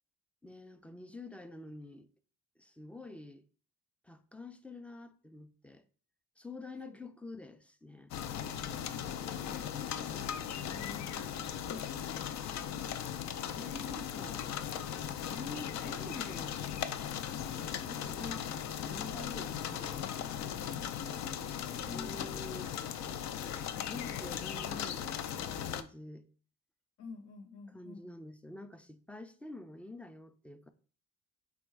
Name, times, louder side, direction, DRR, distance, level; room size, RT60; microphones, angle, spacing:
voice 1, 0.4-2.1 2.6-3.4 4.0-5.8 6.4-8.1 13.5-14.4 15.2-16.6 17.8-18.5 18.8-20.4 21.9-22.7 23.9-25.2 25.6-26.3 27.7-30.7, left 2 dB, 5° left, 0.4 m, -47 dB
sound 1, 8.1-25.8, left 9 dB, 65° left, 0.4 m, -38 dB
voice 2, 9.5-11.5 21.1-22.4 23.7-24.2 27.0-28.1, left 4 dB, 80° left, 1.0 m, -50 dB
4.1 x 2.3 x 4.6 m
cardioid pair, 90°, 30 cm